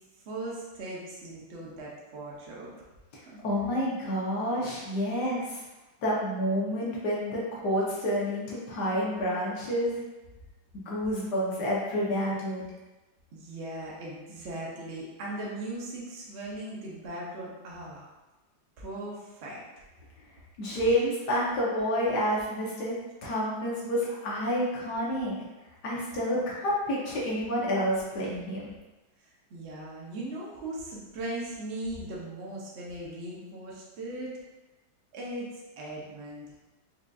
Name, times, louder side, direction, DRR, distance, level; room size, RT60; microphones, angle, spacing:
voice 1, 0.3-2.7 3.3-3.4 9.1-9.2 13.3-18.1 18.8-19.6 29.2-34.3 35.1-36.5, right 1 dB, 75° right, -4 dB, 0.6 m, -39 dB
voice 2, 3.4-5.6 6.0-10.0 10.9-12.6 20.6-22.9 23.2-25.3 25.8-28.7, equal, 65° left, -5 dB, 1.2 m, -29 dB
4.8 x 2.5 x 2.2 m, 1.1 s
omnidirectional pair, 2.1 m